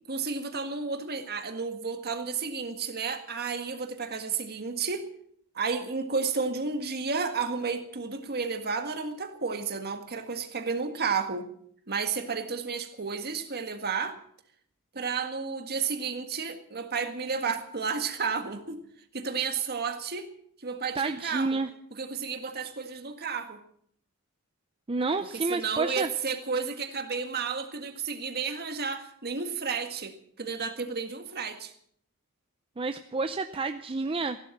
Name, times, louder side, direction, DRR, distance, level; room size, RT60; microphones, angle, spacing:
voice 1, 0.1-5.1 5.5-11.5 11.9-14.2 14.9-18.8 19.1-20.3 20.6-21.6 22.0-23.6 25.3-31.7, right 5 dB, 45° right, 7 dB, 1.8 m, -32 dB
voice 2, 20.9-21.7 24.9-26.1 32.8-34.4, right 3 dB, 25° right, 8 dB, 0.6 m, -29 dB
16.0 x 12.0 x 7.2 m, 0.67 s
head